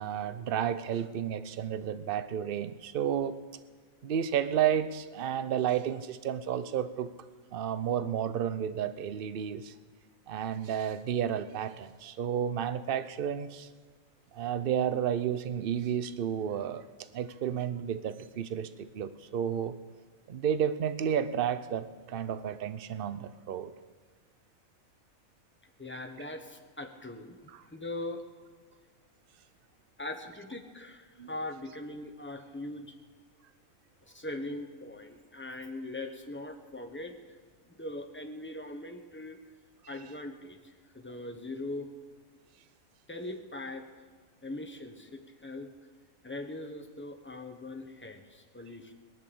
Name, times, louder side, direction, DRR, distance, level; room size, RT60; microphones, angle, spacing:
voice 1, 0.0-3.4 4.0-7.1 7.5-9.7 10.3-13.7 14.3-16.8 17.1-19.8 20.3-23.7 31.2-31.3, right 9 dB, 50° right, 0.7 m, -31 dB
voice 2, 25.6-28.3 30.0-33.0 34.0-37.4 37.6-39.4 39.9-41.9 43.1-44.0 44.4-45.7 46.2-48.9, left 2 dB, 10° left, 1.1 m, -41 dB
18.5 x 11.0 x 7.0 m
omnidirectional pair, 1.5 m